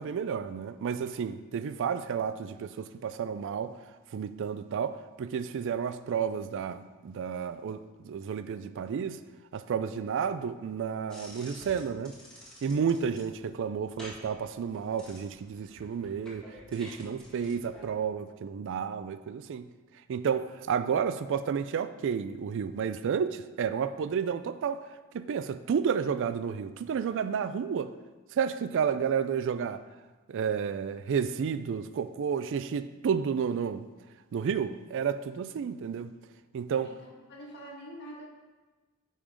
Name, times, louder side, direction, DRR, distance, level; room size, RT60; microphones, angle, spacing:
voice 1, 0.0-3.8 4.1-7.8 8.0-9.2 9.5-12.1 12.6-19.7 20.1-24.9 25.1-27.9 28.3-29.8 30.3-33.9 34.3-36.1 36.5-36.9, right 7 dB, 55° right, 12 dB, 0.3 m, -31 dB
sound 1, 11.1-17.9, equal, 5° left, 1.7 m, -50 dB
voice 2, 36.8-38.3, equal, 50° left, -1 dB, 1.7 m, -45 dB
9.4 x 3.7 x 5.1 m, 1.3 s
head